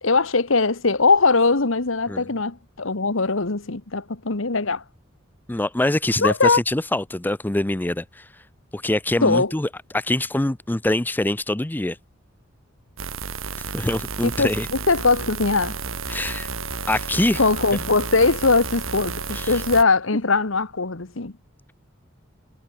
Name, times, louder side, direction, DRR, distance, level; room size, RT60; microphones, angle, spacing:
voice 1, 0.0-4.8 6.2-6.6 9.2-9.5 14.2-15.7 17.4-21.3, left 3 dB, 65° left, 1.5 m, -21 dB
voice 2, 5.5-8.3 8.7-9.7 9.9-12.0 13.6-14.7 16.1-16.5 16.9-17.4 19.3-19.6, left 1 dB, 10° left, 0.5 m, -24 dB
sound 1, 13.0-19.8, right 5 dB, 75° right, 2.7 m, -32 dB
Wind instrument woodwind instrument, 15.7-20.2, left 3 dB, 90° left, 6.8 m, -43 dB
head